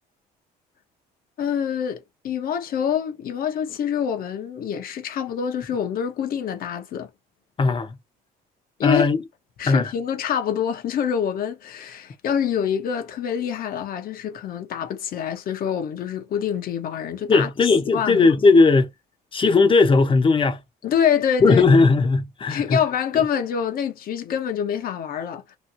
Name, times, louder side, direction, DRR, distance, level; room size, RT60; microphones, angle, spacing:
voice 1, 1.4-7.1 8.8-9.1 9.6-18.3 20.8-21.6 22.5-25.6, left 8 dB, 60° left, 0.9 m, -26 dB
voice 2, 7.6-8.0 8.8-9.2 9.7-9.8 17.3-18.9 19.3-20.6 21.4-22.8, left 4 dB, 30° left, 0.8 m, -17 dB
3.0 x 2.6 x 2.5 m
cardioid pair, 110°, 17 cm